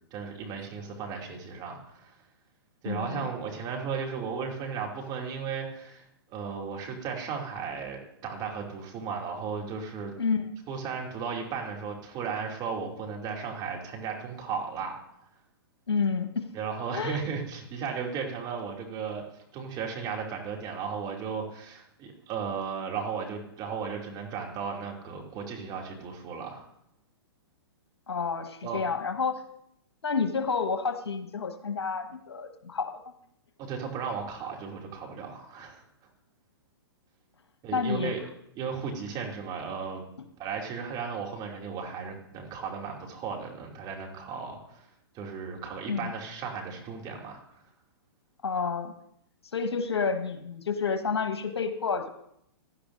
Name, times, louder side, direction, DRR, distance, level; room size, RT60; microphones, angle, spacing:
voice 1, 0.1-2.2 2.8-6.0 6.3-10.1 10.7-14.9 16.5-19.2 19.5-26.7 28.6-28.8 33.6-35.8 37.6-38.2 38.6-40.0 40.4-44.9 45.1-47.6, right 6 dB, 30° right, 0 dB, 2.5 m, -35 dB
voice 2, 2.8-3.3 10.2-10.5 15.9-16.4 16.9-17.2 28.1-29.4 30.0-33.1 37.7-38.1 45.9-46.1 48.4-48.9 49.5-52.1, left 5 dB, 80° left, 8 dB, 1.2 m, -29 dB
16.5 x 11.5 x 2.6 m, 0.74 s
hypercardioid pair, 120°, 14 cm